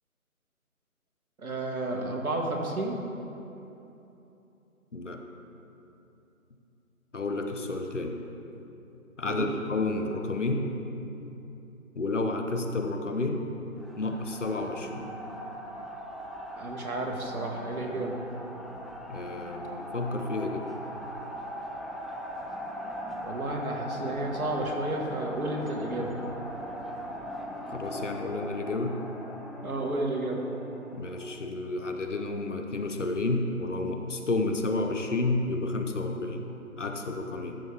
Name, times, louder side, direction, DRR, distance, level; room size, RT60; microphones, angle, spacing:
voice 1, 1.4-3.0 9.3-9.5 16.6-18.2 23.2-26.1 29.6-30.4, right 2 dB, 75° right, 0 dB, 1.8 m, -31 dB
voice 2, 4.9-5.2 7.1-8.2 9.2-10.7 12.0-13.5 14.0-15.1 19.1-20.7 27.7-29.0 30.9-36.5 36.8-37.6, left 2 dB, 55° left, 4 dB, 0.9 m, -31 dB
sound 1, 13.8-31.5, equal, ahead, 0.4 m, -40 dB
13.5 x 6.5 x 3.5 m, 2.9 s
figure-of-eight pair, 175°, 43 cm